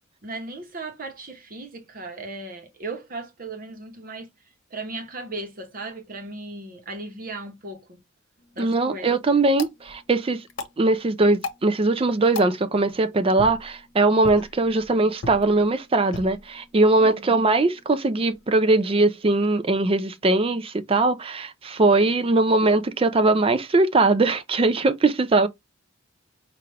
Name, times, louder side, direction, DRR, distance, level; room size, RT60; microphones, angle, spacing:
voice 1, 0.2-4.3 4.7-8.0 8.5-9.2 17.0-17.4, right 2 dB, 45° right, 1.1 m, -36 dB
sound 1, 8.4-18.5, left 3 dB, 65° left, 1.0 m, -41 dB
voice 2, 8.6-10.4 10.8-25.5, right 2 dB, 25° right, 0.4 m, -21 dB
5.6 x 2.5 x 3.2 m
head